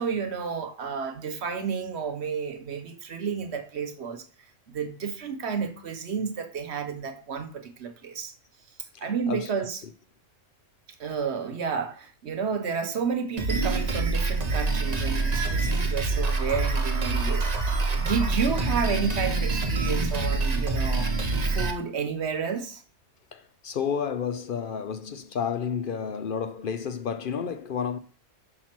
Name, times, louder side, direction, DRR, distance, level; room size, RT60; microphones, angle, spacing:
voice 1, 0.0-4.2 4.7-8.3 9.0-9.8 11.0-21.1 21.4-22.8, right 6 dB, 70° right, 1.2 m, -31 dB
voice 2, 8.9-9.5 9.8-9.9 23.3-28.0, left 7 dB, 60° left, 0.6 m, -31 dB
Drum kit, 13.4-21.7, right 3 dB, 40° right, 0.9 m, -26 dB
5.7 x 4.4 x 5.9 m
omnidirectional pair, 1.2 m